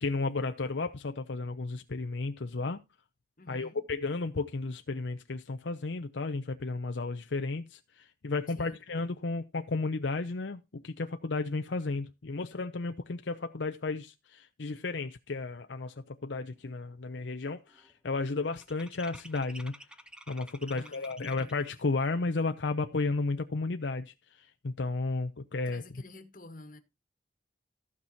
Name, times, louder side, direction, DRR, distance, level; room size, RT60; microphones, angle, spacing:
voice 1, 0.0-2.8 3.5-19.7 20.3-24.1 24.6-25.8, left 3 dB, 80° left, 0.7 m, -33 dB
voice 2, 3.4-3.8 8.5-8.8 20.7-21.8 25.6-26.8, left 2 dB, 45° left, 1.5 m, -51 dB
sound 1, 16.1-16.2 16.5-16.9 17.1-21.8, right 1 dB, 5° right, 0.7 m, -51 dB
15.0 x 6.1 x 4.1 m
head